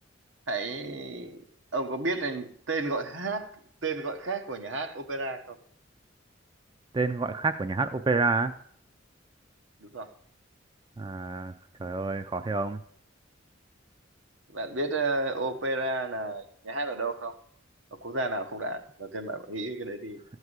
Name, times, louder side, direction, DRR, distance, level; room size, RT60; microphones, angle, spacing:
voice 1, 0.5-1.4 1.7-5.6 9.8-10.1 14.5-17.4 18.0-20.2, right 2 dB, 75° right, 1.2 m, -32 dB
voice 2, 6.9-8.6 11.0-11.5 11.8-12.8, right 3 dB, 25° right, 0.4 m, -28 dB
13.5 x 4.7 x 8.1 m
head